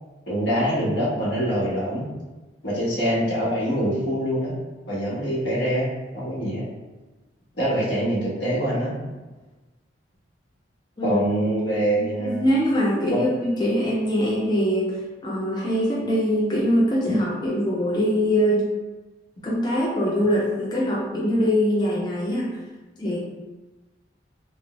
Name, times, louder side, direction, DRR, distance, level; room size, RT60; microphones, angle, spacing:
voice 1, 0.3-2.0 2.6-4.5 4.9-6.6 7.6-8.9 11.0-12.5 13.1-13.2 17.1-17.2, equal, 70° left, -7 dB, 1.1 m, -24 dB
voice 2, 11.9-14.9 15.2-18.7 19.4-22.6 23.0-23.2, equal, 25° left, -4 dB, 0.4 m, -23 dB
3.4 x 2.0 x 2.9 m, 1.2 s
head